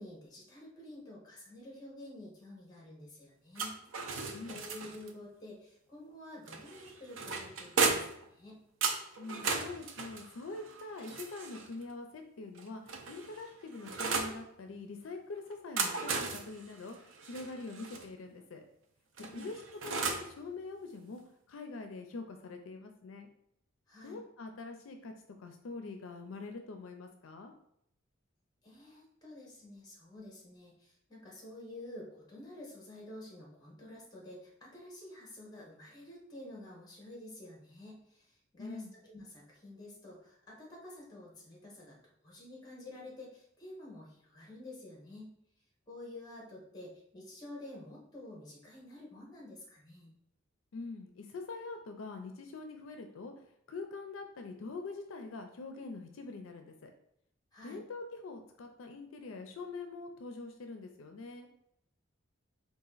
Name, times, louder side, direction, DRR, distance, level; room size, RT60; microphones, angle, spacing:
voice 1, 0.0-3.8 4.4-8.6 19.2-19.5 23.9-24.2 28.6-42.0 42.2-45.3 45.9-50.1 57.5-57.8, left 1 dB, 20° left, -3 dB, 1.2 m, -49 dB
sound 1, 3.5-5.1 6.5-8.2 8.8-11.7 12.5-14.4 15.5-18.0 19.2-20.3, right 4 dB, 75° right, 0.5 m, -36 dB
voice 2, 9.2-18.6 19.3-19.5 19.8-21.2 21.5-23.3 24.0-25.1 25.4-27.5 38.6-38.9 50.7-53.3 53.7-56.9 57.6-61.5, left 3 dB, 80° left, 6 dB, 0.4 m, -44 dB
4.0 x 2.5 x 3.9 m, 0.74 s
head